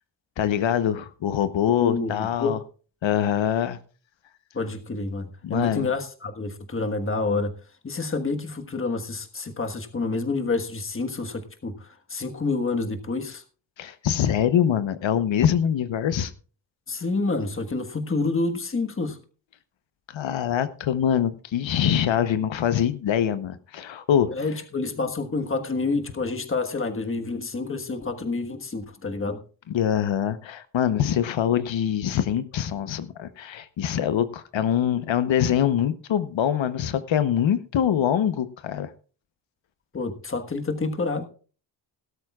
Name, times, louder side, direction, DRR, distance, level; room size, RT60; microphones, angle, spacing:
voice 1, 0.4-2.6 3.0-3.8 5.4-5.9 13.8-16.3 20.1-24.3 29.7-38.9, left 9 dB, 90° left, 12 dB, 0.9 m, -24 dB
voice 2, 1.8-2.6 4.5-7.5 7.8-13.4 16.9-19.2 24.3-29.4 39.9-41.2, left 3 dB, 30° left, 6 dB, 1.4 m, -28 dB
17.5 x 12.5 x 2.4 m, 0.38 s
wide cardioid pair, 155°, 44 cm